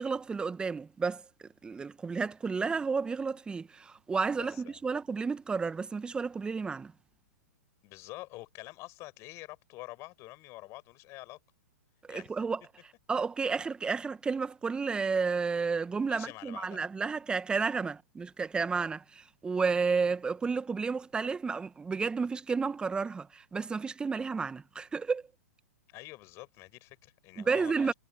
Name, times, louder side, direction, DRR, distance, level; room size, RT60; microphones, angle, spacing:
voice 1, 0.0-6.9 12.0-12.6 13.1-25.2 27.4-27.9, right 5 dB, 10° right, 1.7 m, -31 dB
voice 2, 4.3-4.8 7.8-11.4 12.1-12.3 16.1-16.8 17.7-17.9 18.7-18.9 24.1-24.2 25.9-27.9, left 20 dB, 30° left, 7.2 m, -47 dB
figure-of-eight pair, 115°, 9 cm